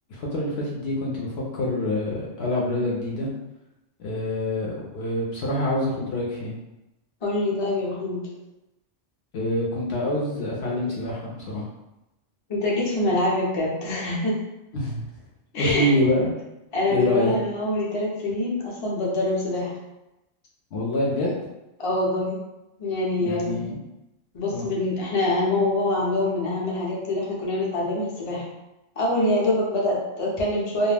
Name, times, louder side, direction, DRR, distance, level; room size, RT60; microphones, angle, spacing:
voice 1, 0.1-3.3 4.0-6.5 9.3-11.7 14.7-15.0 15.5-16.3 16.9-17.3 20.7-21.3 23.2-23.8 24.5-24.7, left 1 dB, 65° left, -3 dB, 0.8 m, -26 dB
voice 2, 7.2-8.2 12.5-14.4 15.5-15.9 16.7-19.7 21.2-21.3 21.8-22.4 22.8-23.6 24.3-28.4 29.0-30.9, left 2 dB, 35° left, -4 dB, 0.6 m, -25 dB
2.3 x 2.1 x 3.3 m, 0.95 s
omnidirectional pair, 1.3 m